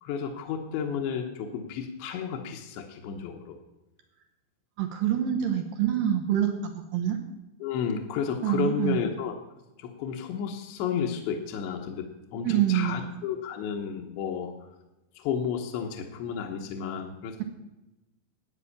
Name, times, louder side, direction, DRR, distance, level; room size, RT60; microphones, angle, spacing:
voice 1, 0.0-3.6 7.6-9.3 9.8-14.5 15.2-17.4, left 7 dB, 75° left, 3 dB, 3.2 m, -32 dB
voice 2, 4.8-7.2 8.4-9.0 12.4-13.1, right 10 dB, 75° right, 5 dB, 2.1 m, -26 dB
12.5 x 9.1 x 7.1 m, 1.0 s
omnidirectional pair, 5.5 m